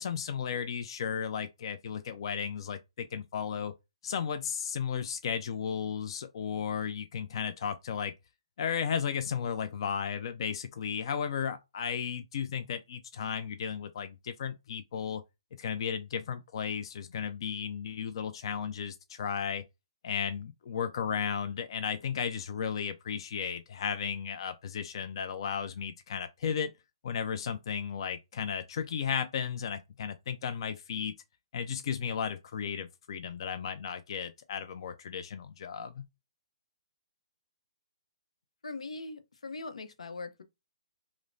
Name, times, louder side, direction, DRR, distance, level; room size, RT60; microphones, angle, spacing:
voice 1, 0.0-3.7 4.0-8.1 8.6-15.2 15.6-19.6 20.0-26.7 27.0-31.1 31.5-36.0, left 7 dB, 50° left, 0.4 m, -34 dB
voice 2, 38.6-40.4, left 3 dB, 90° left, 0.7 m, -41 dB
5.0 x 2.0 x 2.6 m
hypercardioid pair, 155°, 3 cm